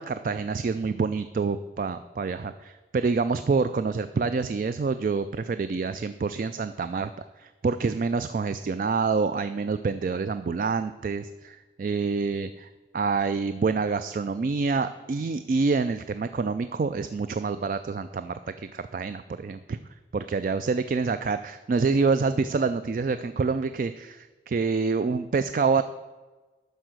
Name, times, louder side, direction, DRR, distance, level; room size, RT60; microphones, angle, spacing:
voice 1, 0.0-7.1 7.4-12.7 12.9-19.8 20.1-25.8, right 4 dB, 50° right, 11 dB, 0.3 m, -27 dB
12.0 x 4.6 x 6.5 m, 1.3 s
head